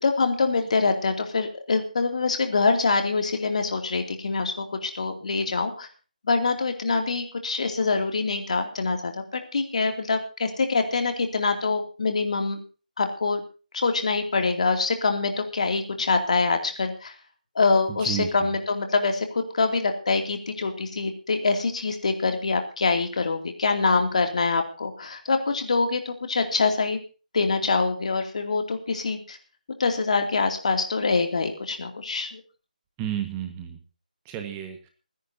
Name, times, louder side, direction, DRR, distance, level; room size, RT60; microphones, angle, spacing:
voice 1, 0.0-5.9 6.2-12.6 13.0-13.4 13.7-17.1 17.5-27.0 27.3-29.4 29.8-32.4, left 4 dB, 50° left, 5 dB, 2.6 m, -25 dB
voice 2, 17.9-18.5 33.0-33.8 34.2-34.9, right 11 dB, 15° right, 5 dB, 1.5 m, -32 dB
27.5 x 10.5 x 2.8 m, 0.34 s
figure-of-eight pair, 155°, 5 cm